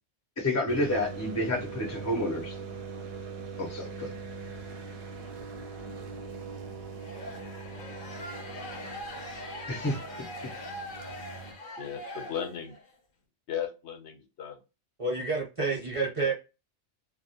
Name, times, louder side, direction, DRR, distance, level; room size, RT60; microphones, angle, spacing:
voice 1, 0.4-2.6 3.6-4.1 9.7-10.0, left 1 dB, 20° left, 0.4 m, -29 dB
sound 1, 0.7-11.5, right 5 dB, 65° right, 0.8 m, -41 dB
sound 2, 7.0-12.9, left 1 dB, 55° left, 0.7 m, -42 dB
voice 2, 11.8-12.7 13.5-14.6 16.2-16.3, left 8 dB, 75° left, 1.0 m, -36 dB
voice 3, 15.0-16.3, right 3 dB, 35° right, 0.8 m, -29 dB
2.2 x 2.1 x 2.7 m
omnidirectional pair, 1.2 m